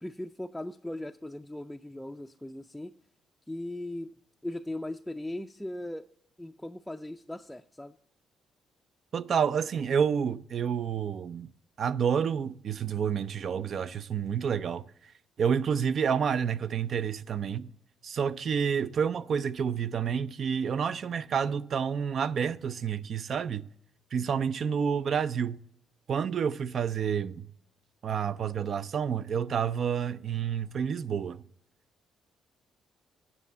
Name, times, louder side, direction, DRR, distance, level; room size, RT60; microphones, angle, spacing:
voice 1, 0.0-2.9 3.5-4.1 4.4-6.1 6.4-8.0, left 1 dB, 5° left, 0.4 m, -38 dB
voice 2, 9.1-11.5 11.8-14.9 15.4-17.7 18.0-23.7 24.1-25.6 26.1-27.5 28.0-31.4, right 7 dB, 55° right, 0.4 m, -29 dB
9.6 x 5.5 x 6.7 m
cardioid pair, 90°, 0 cm